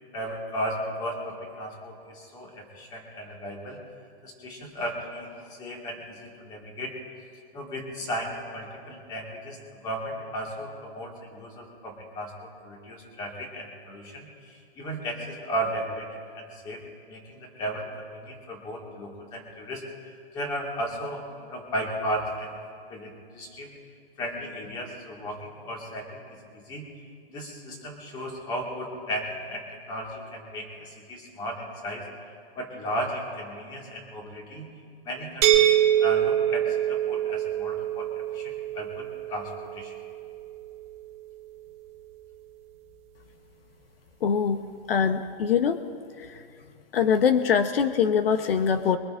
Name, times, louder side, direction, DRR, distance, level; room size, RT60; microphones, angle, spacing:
voice 1, 0.1-3.8 4.2-6.9 7.5-19.8 20.3-22.6 22.9-23.7 24.2-26.8 27.3-32.1 32.6-34.7 35.0-40.0, equal, 15° left, 0 dB, 1.9 m, -35 dB
sound 1, 35.4-41.2, right 11 dB, 15° right, 0.5 m, -25 dB
voice 2, 44.2-44.6 44.9-45.8 46.2-46.4 46.9-49.0, left 7 dB, 65° left, 8 dB, 0.9 m, -23 dB
24.0 x 22.5 x 2.5 m, 2.3 s
hypercardioid pair, 175°, 31 cm